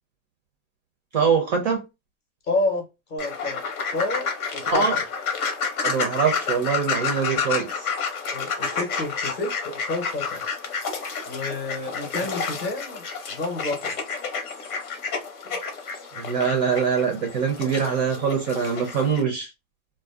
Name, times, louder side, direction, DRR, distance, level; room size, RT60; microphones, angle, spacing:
voice 1, 1.1-1.8 4.7-5.0 5.8-7.9 15.5-15.6 16.2-19.5, right 6 dB, 30° right, 0.4 m, -23 dB
voice 2, 2.4-3.6 3.9-5.0 8.2-10.4 11.2-13.0 13.3-14.0, left 2 dB, 25° left, 0.7 m, -29 dB
sound 1, 3.2-19.2, left 5 dB, 85° left, 1.0 m, -30 dB
2.5 x 2.1 x 2.3 m
hypercardioid pair, 145°, 43 cm